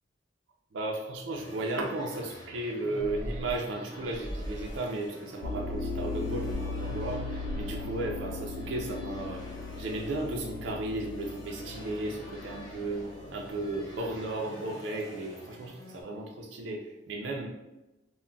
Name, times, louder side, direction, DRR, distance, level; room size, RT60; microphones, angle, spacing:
voice 1, 0.7-9.4 9.8-17.5, right 2 dB, 70° right, 0 dB, 0.4 m, -35 dB
sound 1, 1.3-16.0, left 1 dB, 25° left, 0.8 m, -48 dB
sound 2, 2.6-5.1 6.5-7.9, equal, 10° right, 0.8 m, -40 dB
sound 3, 5.4-14.1, left 3 dB, 55° left, 0.3 m, -38 dB
2.2 x 2.1 x 3.7 m, 1.0 s
head